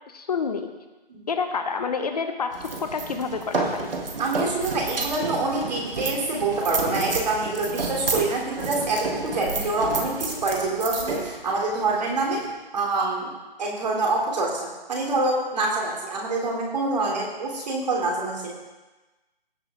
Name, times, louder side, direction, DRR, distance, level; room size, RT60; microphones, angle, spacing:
voice 1, 0.1-0.7 1.3-3.9, left 5 dB, 45° left, 7 dB, 0.9 m, -28 dB
sound 1, 2.5-12.5, right 3 dB, 70° right, 1.9 m, -30 dB
voice 2, 4.2-12.4 12.7-13.3 13.6-18.5, right 2 dB, 45° right, -2 dB, 3.2 m, -26 dB
16.5 x 6.1 x 3.8 m, 1.1 s
figure-of-eight pair, 160°, 29 cm